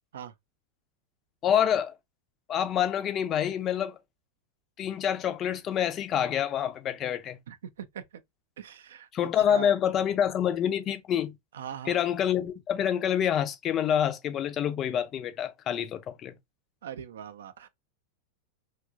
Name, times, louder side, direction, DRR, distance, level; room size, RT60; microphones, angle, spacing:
voice 1, 1.4-1.9 2.5-4.0 4.8-7.4 9.1-11.4 11.9-16.3, left 9 dB, 30° left, 0.4 m, -27 dB
voice 2, 7.5-8.0 8.6-9.1 9.5-9.7 11.5-12.0 16.8-17.7, right 9 dB, 60° right, 0.4 m, -40 dB
2.9 x 2.2 x 2.4 m
figure-of-eight pair, 90°, 0 cm